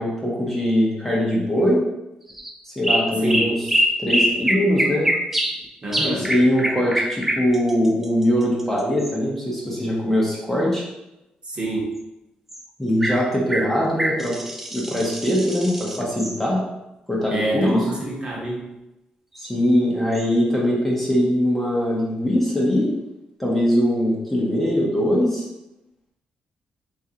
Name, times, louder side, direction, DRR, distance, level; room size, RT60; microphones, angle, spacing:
voice 1, 0.0-1.8 2.6-3.6 4.0-5.1 6.0-10.8 12.8-14.4 14.7-16.6 17.1-17.9 19.4-22.9 23.4-25.4, equal, 10° left, -5 dB, 0.7 m, -21 dB
sound 1, 2.3-2.5 2.8-5.6 5.9-9.1 12.5-12.6 13.0-13.2 13.5-16.4 19.4-19.5 20.1-20.2, equal, 10° right, 0.4 m, -24 dB
voice 2, 5.8-6.3 11.4-11.9 17.3-18.6, right 1 dB, 35° right, -4 dB, 1.0 m, -27 dB
3.0 x 2.4 x 2.8 m, 0.94 s
cardioid pair, 95°, 3 cm